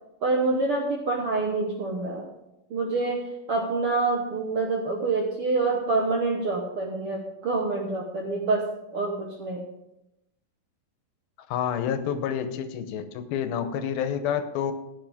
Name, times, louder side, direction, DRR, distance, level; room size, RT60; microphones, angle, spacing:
voice 1, 0.2-2.3 2.7-9.6, right 3 dB, 65° right, 0 dB, 1.4 m, -27 dB
voice 2, 11.5-14.7, left 8 dB, 85° left, 9 dB, 2.8 m, -28 dB
15.5 x 9.6 x 3.6 m, 0.88 s
omnidirectional pair, 4.1 m